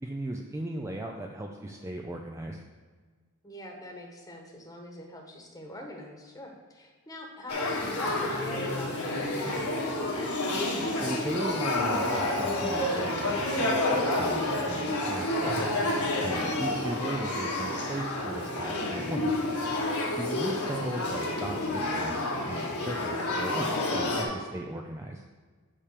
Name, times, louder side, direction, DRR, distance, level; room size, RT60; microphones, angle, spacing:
voice 1, 0.0-2.6 11.0-13.9 14.1-15.8 16.2-19.4 20.2-25.2, right 1 dB, 15° right, 2 dB, 0.4 m, -37 dB
voice 2, 3.4-10.3 16.4-16.9 20.0-20.3, left 1 dB, 15° left, 1 dB, 1.2 m, -43 dB
Male speech man speaking / Child speech kid speaking / Conversation, 7.5-24.2, left 1 dB, 80° left, 1.7 m, -29 dB
8.6 x 3.4 x 6.6 m, 1.5 s
head